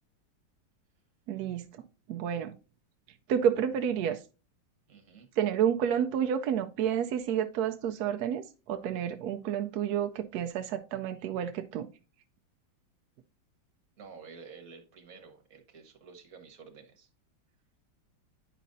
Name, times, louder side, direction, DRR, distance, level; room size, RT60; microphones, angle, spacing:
voice 1, 1.3-2.5 3.3-4.2 5.4-11.9, right 9 dB, 75° right, 0.8 m, -30 dB
voice 2, 4.9-5.3 14.0-17.1, right 5 dB, 50° right, 1.6 m, -50 dB
10.0 x 5.0 x 2.6 m
omnidirectional pair, 2.1 m